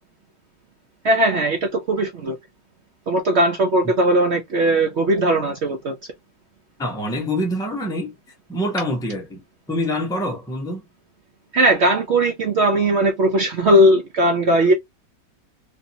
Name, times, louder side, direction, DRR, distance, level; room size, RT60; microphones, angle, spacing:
voice 1, 1.0-2.4 3.1-6.0 11.5-14.7, right 1 dB, 75° right, 0.6 m, -18 dB
voice 2, 6.8-8.1 8.5-9.4 9.7-10.8, left 1 dB, 5° left, 0.3 m, -25 dB
3.3 x 2.7 x 2.7 m
omnidirectional pair, 2.0 m